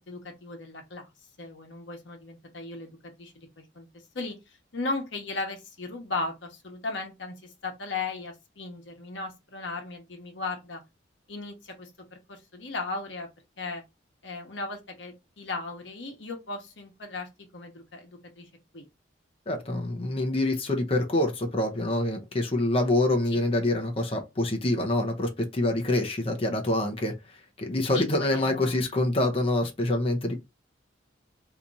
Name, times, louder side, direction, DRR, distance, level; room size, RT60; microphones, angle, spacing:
voice 1, 0.1-1.1 1.4-3.9 4.1-10.8 11.3-13.3 13.6-13.8 14.2-18.8 23.3-23.4 27.9-28.8, left 3 dB, 70° left, 1.0 m, -37 dB
voice 2, 19.5-27.1 27.6-30.4, left 1 dB, 30° left, 0.6 m, -26 dB
2.9 x 2.4 x 3.9 m
head